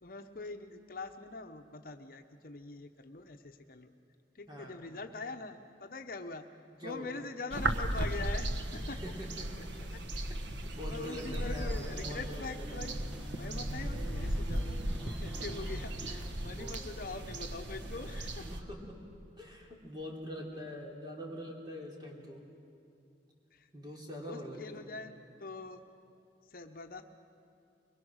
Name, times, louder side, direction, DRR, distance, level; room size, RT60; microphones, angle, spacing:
voice 1, 0.0-3.9 4.3-6.5 6.8-9.0 9.9-10.0 10.8-12.9 13.3-18.5 23.5-23.7 24.1-25.8 26.4-27.0, left 3 dB, 55° left, 6 dB, 0.9 m, -43 dB
voice 2, 4.5-4.8 6.7-7.2 8.7-9.9 10.6-12.9 16.4-16.7 18.4-19.0 19.4-22.4 23.7-24.8, equal, 25° right, -1 dB, 3.2 m, -44 dB
sound 1, 7.5-18.6, right 1 dB, 90° right, 1.3 m, -36 dB
sound 2, 10.9-16.3, right 1 dB, 5° right, 1.2 m, -48 dB
23.0 x 22.0 x 6.4 m, 2.6 s
head